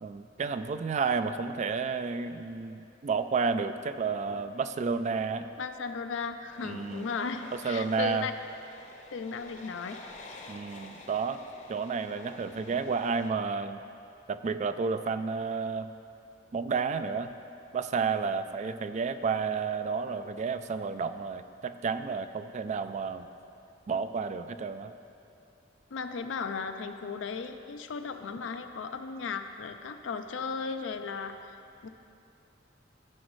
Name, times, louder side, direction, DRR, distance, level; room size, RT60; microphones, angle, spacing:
voice 1, 0.0-5.5 6.6-7.1 7.5-8.3 10.5-11.4 11.7-13.8 14.3-15.9 16.5-17.3 17.7-23.3 23.9-24.9, right 5 dB, 40° right, 11 dB, 0.3 m, -31 dB
voice 2, 5.6-8.3 9.1-10.0 12.7-12.8 25.9-31.6 31.8-31.9, left 5 dB, 70° left, 7 dB, 0.4 m, -36 dB
sound 1, 6.5-13.3, left 2 dB, 40° left, 0.8 m, -50 dB
14.0 x 6.3 x 3.1 m, 2.6 s
head